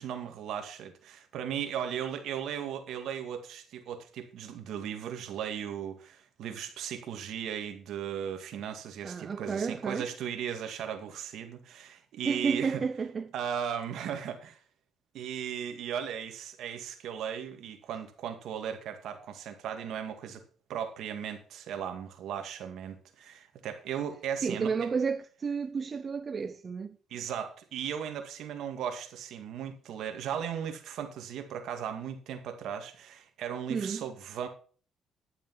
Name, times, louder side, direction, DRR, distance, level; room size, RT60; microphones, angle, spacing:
voice 1, 0.0-12.8 13.3-14.6 15.1-20.4 20.7-24.7 27.1-34.5, right 8 dB, 80° right, 2.1 m, -37 dB
voice 2, 9.0-10.1 12.3-13.3 24.4-27.0 33.7-34.0, right 5 dB, 40° right, 0.6 m, -31 dB
11.5 x 7.3 x 5.6 m
cardioid pair, 90°, 0 cm